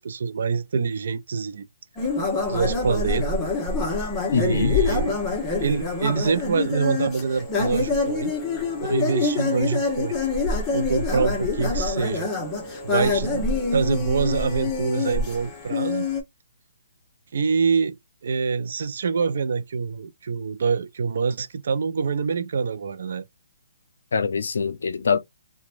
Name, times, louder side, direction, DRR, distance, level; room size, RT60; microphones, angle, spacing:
voice 1, 0.0-1.7 2.5-3.5 4.3-5.2 5.6-8.3 8.8-10.2 10.7-12.3 12.8-16.1 17.3-18.0 18.2-23.2, right 5 dB, 60° right, 0.4 m, -25 dB
sound 1, 2.0-16.2, left 3 dB, 15° left, 0.9 m, -26 dB
voice 2, 4.3-4.8 24.1-25.2, left 6 dB, 75° left, 0.5 m, -23 dB
2.9 x 2.2 x 2.5 m
hypercardioid pair, 150°, 0 cm